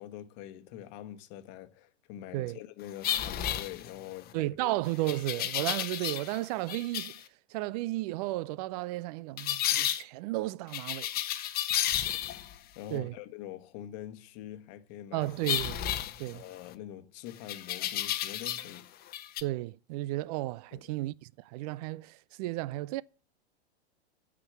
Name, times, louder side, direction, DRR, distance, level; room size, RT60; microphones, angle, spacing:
voice 1, 0.0-4.7 5.0-5.2 6.4-6.5 12.7-15.3 16.3-18.9 20.7-20.8, left 12 dB, 45° left, 1.3 m, -45 dB
sound 1, 3.0-4.2 5.1-6.4 6.7-7.2 9.4-10.0 10.7-12.6 15.4-16.7 17.5-18.8 19.1-19.4, left 11 dB, 30° left, 1.0 m, -32 dB
voice 2, 4.3-7.2 7.5-11.2 12.9-13.2 15.1-15.8 16.2-16.4 19.4-23.0, right 18 dB, 40° right, 0.5 m, -33 dB
8.5 x 7.3 x 8.4 m
hypercardioid pair, 110°, 33 cm